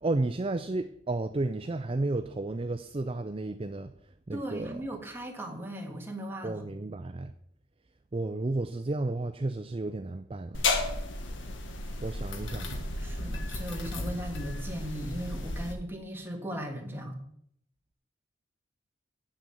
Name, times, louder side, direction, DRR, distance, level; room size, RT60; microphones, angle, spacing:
voice 1, 0.0-3.9 4.3-4.8 6.4-7.3 8.1-10.7 12.0-12.9, right 2 dB, 30° right, 9 dB, 0.5 m, -32 dB
voice 2, 4.3-6.7 13.0-17.2, equal, 10° right, 2 dB, 1.7 m, -37 dB
sound 1, 10.5-15.7, left 2 dB, 85° left, 1.3 m, -33 dB
8.7 x 6.5 x 7.6 m, 0.70 s
head